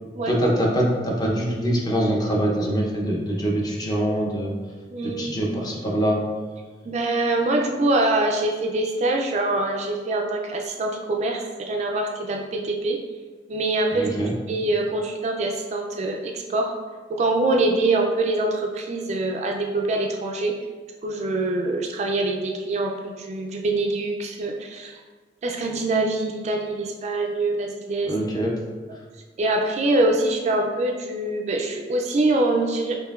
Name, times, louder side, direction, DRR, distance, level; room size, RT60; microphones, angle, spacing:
voice 1, 0.3-4.5 5.0-6.2 13.9-14.3 28.1-28.5, right 1 dB, 25° left, -3 dB, 0.7 m, -24 dB
voice 2, 4.9-5.4 6.9-13.0 13.5-14.1 14.5-16.7 17.1-20.5 21.0-24.9 25.4-28.1 29.4-33.0, right 2 dB, 40° right, 1 dB, 0.3 m, -24 dB
5.5 x 2.6 x 2.3 m, 1.4 s
head